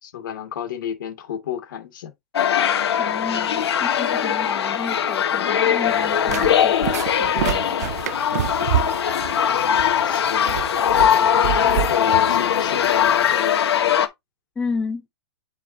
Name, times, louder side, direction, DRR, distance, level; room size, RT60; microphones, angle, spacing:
voice 1, 0.0-2.1 9.5-10.6 10.9-13.7, left 9 dB, 50° left, 2.4 m, -32 dB
sound 1, 2.3-14.1, left 9 dB, 80° left, 1.7 m, -20 dB
voice 2, 3.0-7.9 14.6-15.1, left 4 dB, 5° left, 0.6 m, -32 dB
sound 2, 5.9-13.3, right 12 dB, 40° right, 0.4 m, -29 dB
9.5 x 4.0 x 2.8 m
hypercardioid pair, 175°, 13 cm